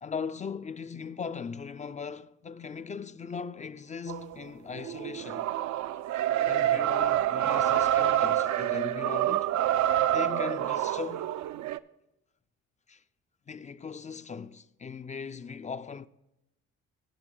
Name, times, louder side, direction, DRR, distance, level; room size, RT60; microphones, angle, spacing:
voice 1, 0.0-5.5 6.5-9.5 10.1-11.3 12.9-13.0 13.5-16.1, left 6 dB, 25° left, 0.3 m, -39 dB
sound 1, 4.1-4.4 4.7-11.8, right 12 dB, 70° right, 0.5 m, -27 dB
17.0 x 5.9 x 3.7 m
cardioid pair, 90°, 30 cm